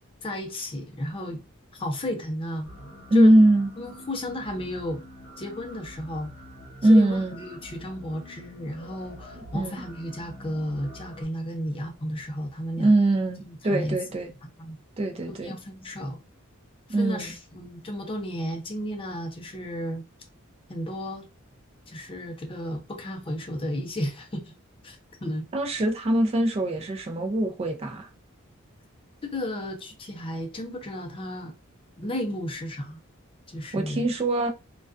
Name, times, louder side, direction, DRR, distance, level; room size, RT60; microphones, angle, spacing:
voice 1, 0.2-1.4 1.7-2.7 3.1-3.3 3.8-5.0 5.4-6.3 6.9-12.9 13.4-14.0 14.6-14.8 15.4-16.2 17.0-20.0 20.7-21.2 21.9-24.5 24.8-25.5 29.2-31.5 32.0-33.0 33.5-34.1, left 1 dB, 25° left, 0.5 m, -33 dB
sound 1, 2.7-11.2, left 1 dB, 60° left, 0.9 m, -45 dB
voice 2, 3.1-3.7 6.8-7.4 9.5-9.8 12.8-14.3 15.0-15.5 16.9-17.3 25.5-28.1 33.7-34.5, right 1 dB, 30° right, 0.4 m, -22 dB
2.3 x 2.2 x 2.4 m
head